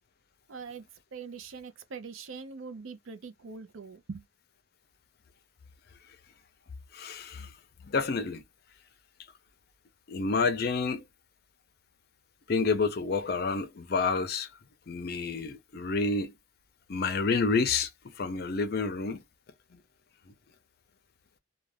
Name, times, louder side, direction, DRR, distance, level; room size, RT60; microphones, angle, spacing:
voice 1, 0.5-0.9 1.1-4.2, right 5 dB, 90° right, 0.5 m, -42 dB
voice 2, 6.9-7.5 7.8-8.4 10.1-11.0 12.5-14.5 14.9-16.3 16.9-17.9 18.1-19.2 19.7-19.8, left 4 dB, 50° left, 0.5 m, -29 dB
2.3 x 2.2 x 3.2 m
head